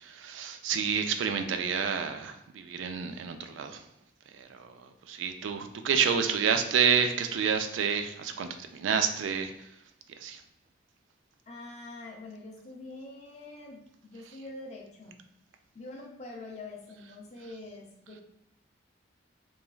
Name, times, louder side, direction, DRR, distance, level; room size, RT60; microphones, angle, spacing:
voice 1, 0.0-3.8 4.3-9.5 10.2-10.4, right 7 dB, 85° right, 7 dB, 0.3 m, -29 dB
voice 2, 11.5-15.2 15.7-18.2, left 2 dB, 35° left, 0 dB, 0.5 m, -45 dB
3.1 x 2.3 x 2.3 m, 0.82 s
head